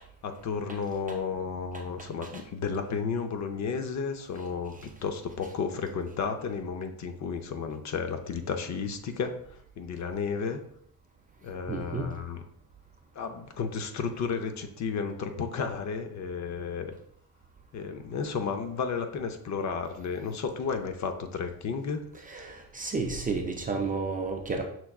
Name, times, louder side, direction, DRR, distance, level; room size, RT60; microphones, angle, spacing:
voice 1, 0.2-10.6 11.4-12.4 13.1-16.9 17.7-22.1, left 5 dB, 45° left, 6 dB, 0.6 m, -33 dB
voice 2, 11.7-12.1 22.2-24.6, right 4 dB, 20° right, 2 dB, 0.4 m, -32 dB
6.0 x 3.3 x 2.3 m, 0.68 s
cardioid pair, 130°, 38 cm